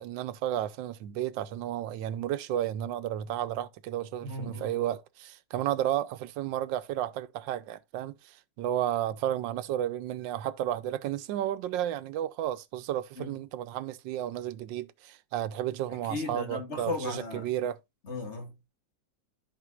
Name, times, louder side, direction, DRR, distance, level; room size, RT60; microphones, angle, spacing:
voice 1, 0.0-17.8, right 12 dB, 90° right, 1.3 m, -32 dB
voice 2, 4.2-4.7 13.2-13.3 16.1-17.5 18.0-18.7, left 3 dB, 40° left, 2.0 m, -36 dB
14.0 x 4.8 x 2.4 m
omnidirectional pair, 1.9 m